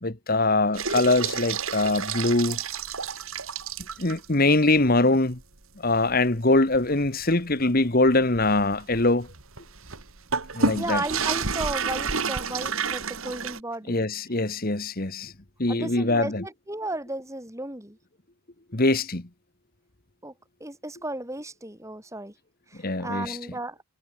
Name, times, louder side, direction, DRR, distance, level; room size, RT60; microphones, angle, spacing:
voice 1, 0.0-2.6 4.0-5.4 5.8-9.3 10.5-11.0 13.9-15.3 15.6-16.4 18.7-19.2 22.8-23.4, left 2 dB, 40° left, 1.6 m, -23 dB
sound 1, 0.7-4.3 4.8-4.9 5.3-5.4 5.9-13.6, right 5 dB, 65° right, 2.3 m, -30 dB
voice 2, 10.8-14.0 15.7-18.0 20.2-20.3 20.6-22.3 22.7-23.8, right 2 dB, 15° right, 2.6 m, -34 dB
head